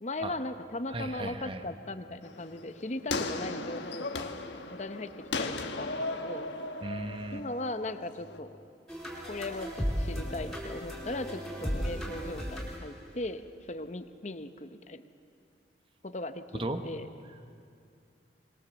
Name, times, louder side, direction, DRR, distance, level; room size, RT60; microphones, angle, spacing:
voice 1, 0.0-4.3 4.7-6.5 7.3-8.6 9.3-15.0 16.0-17.1, left 2 dB, 40° left, 9 dB, 0.8 m, -38 dB
voice 2, 0.9-1.6 6.8-7.4 16.6-16.8, right 2 dB, 30° right, 7 dB, 1.1 m, -36 dB
sound 1, 2.2-8.4, left 3 dB, 80° left, 1.4 m, -37 dB
sound 2, 8.9-13.0, equal, ahead, 4.2 m, -35 dB
25.0 x 21.0 x 7.3 m, 2.4 s
head